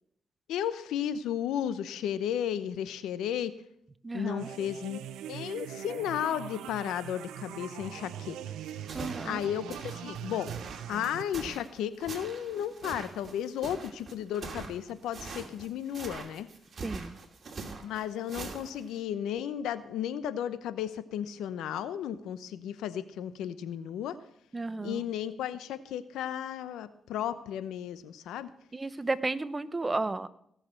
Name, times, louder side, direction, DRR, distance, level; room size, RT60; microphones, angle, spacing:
voice 1, 0.5-3.5 4.1-5.0 5.3-8.4 9.2-10.5 10.9-16.5 17.8-24.2 24.8-28.5, left 10 dB, 85° left, 14 dB, 0.8 m, -34 dB
voice 2, 4.0-4.5 8.9-9.4 16.8-17.2 24.5-25.1 28.7-30.3, right 3 dB, 25° right, 15 dB, 0.8 m, -33 dB
sound 1, 4.4-11.2, right 10 dB, 85° right, 0.6 m, -42 dB
sound 2, 8.7-19.0, right 4 dB, 45° right, 2.6 m, -43 dB
17.0 x 6.6 x 7.7 m, 0.71 s
cardioid pair, 70°, 0 cm